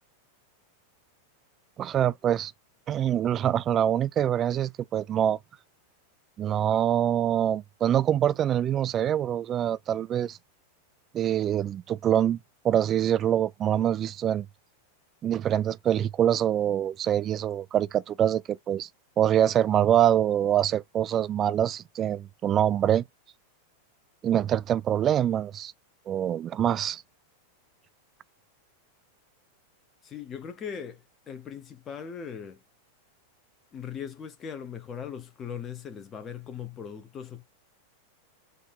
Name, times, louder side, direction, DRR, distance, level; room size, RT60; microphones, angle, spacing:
voice 1, 1.8-2.5 2.9-5.4 6.4-10.4 11.1-12.4 12.6-14.5 15.2-18.9 19.2-23.0 24.2-25.7 26.1-27.0, right 10 dB, 30° right, 0.3 m, -25 dB
voice 2, 30.0-32.6 33.7-37.4, left 7 dB, 25° left, 0.7 m, -39 dB
5.3 x 2.4 x 4.0 m
figure-of-eight pair, 90°, 0 cm